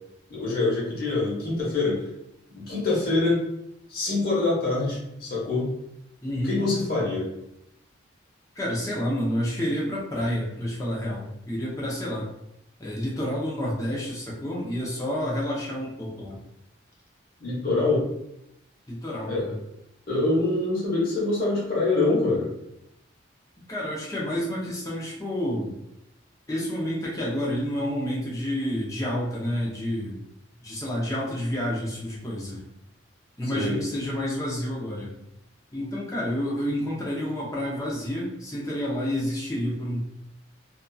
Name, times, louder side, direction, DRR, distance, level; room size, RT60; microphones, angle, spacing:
voice 1, 0.3-2.0 2.5-3.4 3.9-5.7 6.4-7.3 17.4-18.0 19.3-19.5 20.1-22.5 33.5-33.8, left 2 dB, 50° left, -6 dB, 1.1 m, -25 dB
voice 2, 6.2-6.6 8.6-12.3 12.8-16.4 18.9-19.6 23.7-25.7 26.5-30.2 30.6-32.6 33.4-35.2 35.7-40.0, equal, 15° left, -5 dB, 0.6 m, -29 dB
2.7 x 2.4 x 2.3 m, 0.82 s
head